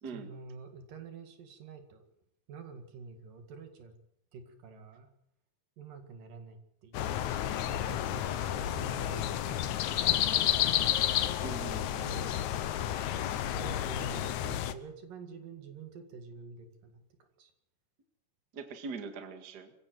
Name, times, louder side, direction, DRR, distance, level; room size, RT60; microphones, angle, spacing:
voice 1, 0.1-2.1 2.5-3.9 4.3-5.1 5.8-7.2 7.6-10.7 12.0-12.4 13.5-17.0 17.4-17.5, right 4 dB, 75° right, 6 dB, 3.8 m, -47 dB
sound 1, 6.9-14.7, left 11 dB, 70° left, 2.1 m, -31 dB
voice 2, 11.4-12.2 18.5-19.7, right 5 dB, 35° right, 6 dB, 1.9 m, -42 dB
24.0 x 15.5 x 7.8 m, 0.76 s
omnidirectional pair, 3.9 m